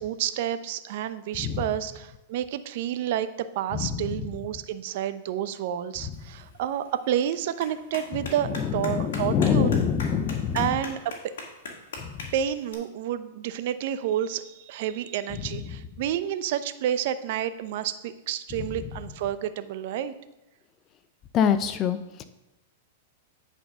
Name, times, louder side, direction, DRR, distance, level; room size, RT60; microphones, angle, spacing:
voice 1, 0.0-3.3 3.5-9.8 10.5-11.0 12.3-20.1, right 10 dB, 60° right, 11 dB, 0.6 m, -29 dB
Clapping, 6.1-12.7, left 3 dB, 75° left, 1.9 m, -42 dB
voice 2, 8.5-10.7 21.3-22.2, left 7 dB, 35° left, 11 dB, 0.6 m, -25 dB
9.1 x 4.4 x 5.6 m, 0.95 s
hypercardioid pair, 120°, 0 cm